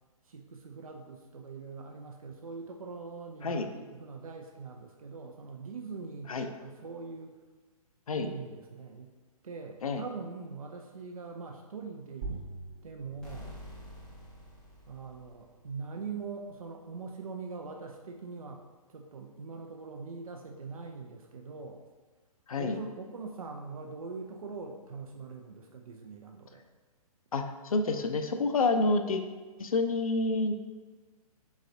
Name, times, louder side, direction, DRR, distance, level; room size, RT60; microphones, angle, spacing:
voice 1, 0.2-7.3 8.1-9.1 9.4-12.4 12.8-13.6 14.9-18.6 18.9-21.8 22.6-26.6, right 4 dB, 70° right, 2 dB, 0.4 m, -42 dB
sound 1, 12.2-17.3, right 3 dB, 40° right, 0.8 m, -46 dB
sound 2, 13.2-15.9, left 1 dB, 5° left, 0.4 m, -49 dB
voice 2, 27.3-29.2 29.6-30.5, left 3 dB, 70° left, 6 dB, 0.4 m, -28 dB
4.0 x 3.5 x 2.5 m, 1.4 s
figure-of-eight pair, 125°, 19 cm